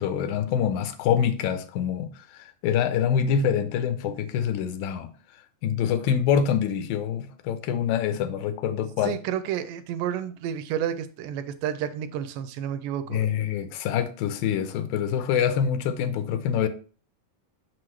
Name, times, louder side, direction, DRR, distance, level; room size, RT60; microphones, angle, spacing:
voice 1, 0.0-9.2 13.1-16.7, left 8 dB, 85° left, 2.4 m, -26 dB
voice 2, 9.0-13.2, right 9 dB, 80° right, 2.1 m, -30 dB
6.3 x 6.2 x 3.1 m
omnidirectional pair, 4.1 m